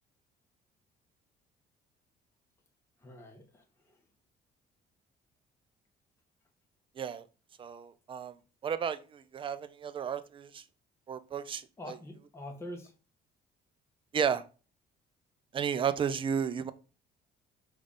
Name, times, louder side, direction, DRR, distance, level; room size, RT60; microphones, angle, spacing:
voice 1, 3.0-4.0 11.8-12.9, left 1 dB, 15° left, 0.8 m, -45 dB
voice 2, 7.6-8.3 8.6-10.6 11.1-11.6 14.1-14.4 15.5-16.7, right 7 dB, 30° right, 0.4 m, -33 dB
3.8 x 2.4 x 3.6 m
cardioid pair, 110°, 17 cm